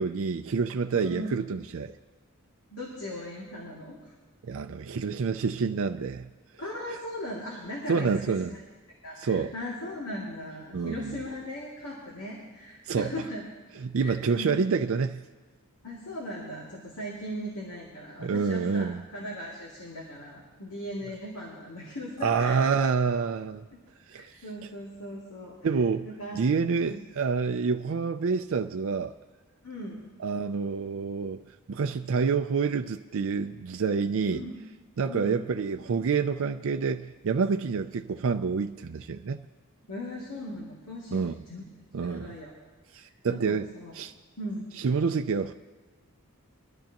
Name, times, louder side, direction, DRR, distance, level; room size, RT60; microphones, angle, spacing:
voice 1, 0.0-1.9 4.4-6.3 7.9-8.5 9.2-9.5 10.7-11.2 12.9-13.1 13.8-15.3 18.2-19.0 22.2-23.7 24.1-24.3 25.6-26.1 26.3-29.1 30.2-31.4 31.7-34.4 35.0-39.4 41.1-41.3 41.9-42.4 42.9-43.7 43.9-44.1 44.8-45.5, right 5 dB, 65° right, 6 dB, 0.4 m, -28 dB
voice 2, 0.9-1.4 2.7-4.0 6.6-8.6 9.0-13.4 14.0-14.6 15.8-22.6 24.1-25.6 26.0-26.5 26.8-27.0 29.6-30.1 34.3-34.6 35.1-35.4 39.9-41.6 42.0-42.5 43.3-43.9 44.4-44.7, left 1 dB, 80° left, -3 dB, 2.5 m, -38 dB
22.5 x 13.0 x 3.0 m, 1.3 s
head